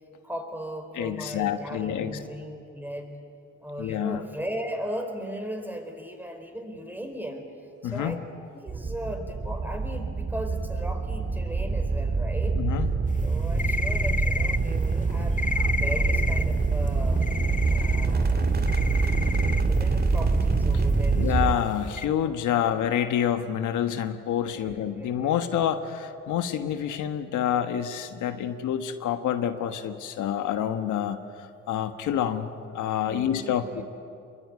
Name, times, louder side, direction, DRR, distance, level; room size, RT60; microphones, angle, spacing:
voice 1, 0.2-3.2 3.6-7.5 7.8-8.2 8.5-12.6 13.2-15.5 15.8-17.3 17.7-18.5 18.7-19.3 19.6-21.5 22.2-22.7 24.4-25.4 33.0-33.8, equal, 5° right, 5 dB, 4.6 m, -37 dB
voice 2, 1.0-2.2 3.8-4.2 7.8-8.2 12.5-12.9 21.1-33.8, left 9 dB, 80° left, 8 dB, 1.4 m, -28 dB
sound 1, 8.7-21.5, right 4 dB, 30° right, 2.0 m, -25 dB
sound 2, 13.2-22.1, left 4 dB, 25° left, 0.7 m, -32 dB
25.5 x 22.5 x 9.5 m, 2.5 s
cardioid pair, 90°, 30 cm